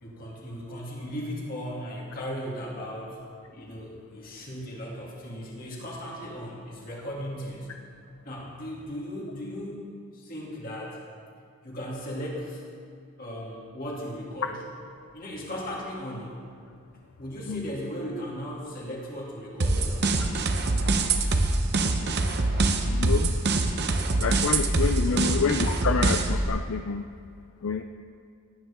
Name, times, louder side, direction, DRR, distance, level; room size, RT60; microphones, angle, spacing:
voice 1, 0.0-3.2 3.5-7.7 8.2-9.8 10.1-11.1 11.6-12.6 13.2-14.6 15.1-16.4 17.2-20.2 25.0-25.3, equal, 40° left, -4 dB, 2.4 m, -37 dB
sound 1, 19.6-26.5, right 2 dB, 50° right, 0.8 m, -24 dB
voice 2, 22.9-23.3 24.2-27.1 27.6-27.8, left 5 dB, 65° left, 6 dB, 0.4 m, -28 dB
18.5 x 9.5 x 3.6 m, 2.2 s
head